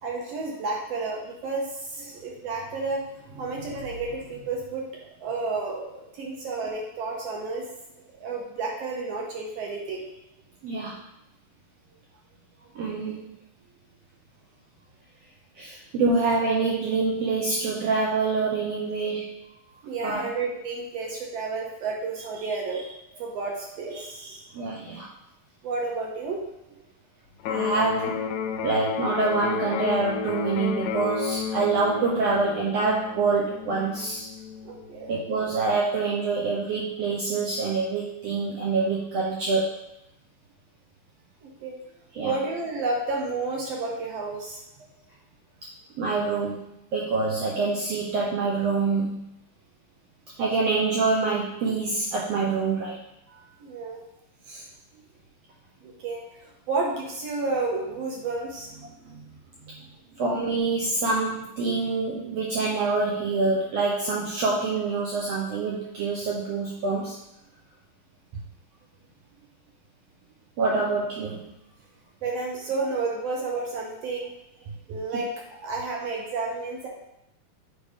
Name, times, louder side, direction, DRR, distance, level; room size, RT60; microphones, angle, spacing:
voice 1, 0.0-4.8 5.2-7.6 8.2-10.1 19.9-24.5 25.6-26.4 34.6-35.1 41.4-41.7 42.2-44.6 53.3-54.0 54.5-54.7 55.8-59.9 72.2-74.3 74.9-76.9, right 3 dB, 70° right, -1 dB, 1.6 m, -31 dB
voice 2, 10.6-11.0 12.7-13.3 15.6-19.3 20.0-20.3 24.5-25.1 27.5-28.2 28.6-34.3 35.1-39.7 42.1-42.4 46.0-46.6 46.9-49.3 50.4-53.0 60.2-67.2 70.6-71.4 75.1-75.2, right 3 dB, 85° right, -3 dB, 1.4 m, -26 dB
Electric guitar, 27.4-35.4, left 6 dB, 85° left, 2.3 m, -32 dB
8.2 x 4.8 x 3.5 m, 0.84 s
omnidirectional pair, 3.9 m